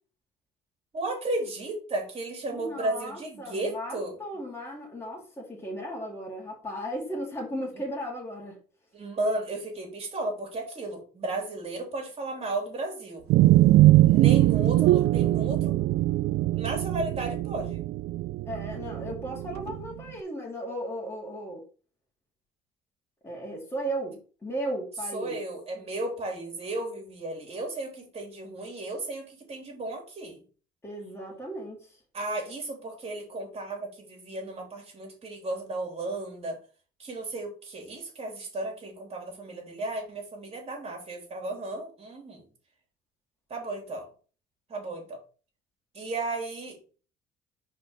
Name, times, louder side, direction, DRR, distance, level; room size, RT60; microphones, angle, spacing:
voice 1, 0.9-4.2 8.9-13.3 14.1-15.8 16.5-17.8 25.1-30.4 32.1-36.6 37.0-42.5 43.5-44.1 44.7-45.2 45.9-47.0, right 2 dB, 35° right, 0 dB, 3.1 m, -34 dB
voice 2, 2.6-8.6 18.5-21.6 23.2-25.4 30.8-31.9, right 1 dB, 15° left, -2 dB, 2.8 m, -36 dB
sound 1, 13.3-19.9, right 16 dB, 70° right, 0.4 m, -22 dB
5.2 x 4.3 x 5.8 m, 0.37 s
cardioid pair, 110°, 17 cm